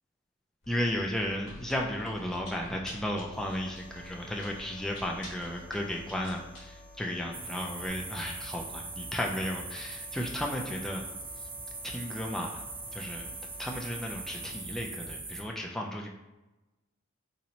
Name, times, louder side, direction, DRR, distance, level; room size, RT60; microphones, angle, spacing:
Chewing mastication, 0.6-7.9, left 1 dB, 65° left, 1.1 m, -49 dB
voice 1, 0.7-11.0 11.8-12.6 12.9-13.3 13.6-16.1, left 1 dB, ahead, -1 dB, 0.3 m, -34 dB
sound 1, 3.3-14.5, left 1 dB, 45° left, 0.7 m, -55 dB
sound 2, 7.3-15.4, right 3 dB, 85° right, 0.7 m, -41 dB
2.8 x 2.5 x 4.1 m, 1.1 s
head